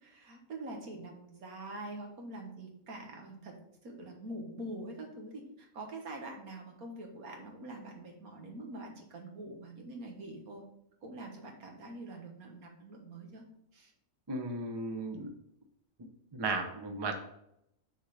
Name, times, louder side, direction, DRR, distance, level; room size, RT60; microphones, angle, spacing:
voice 1, 0.0-3.5 3.8-10.6 11.0-13.4 13.7-13.9, right 1 dB, 85° right, 2 dB, 1.9 m, -45 dB
voice 2, 14.3-15.3 16.3-17.2, right 3 dB, 25° right, 4 dB, 0.7 m, -35 dB
6.4 x 3.9 x 6.3 m, 0.78 s
omnidirectional pair, 1.5 m